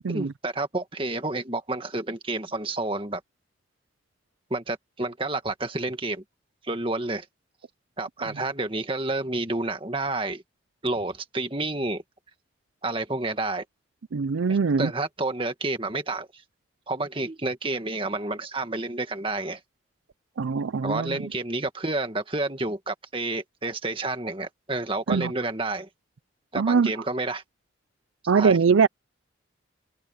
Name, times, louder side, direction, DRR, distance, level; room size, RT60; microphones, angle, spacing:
voice 1, 0.1-3.2 4.5-6.2 6.7-7.3 8.0-10.4 10.8-12.0 12.8-13.6 14.5-16.3 16.9-19.6 20.8-25.9 26.5-27.4 28.3-28.6, right 2 dB, 25° right, 1.9 m, -29 dB
voice 2, 14.1-14.9 20.4-21.2 25.1-25.3 26.6-26.9 28.3-28.9, right 5 dB, 90° right, 0.5 m, -22 dB
open air
head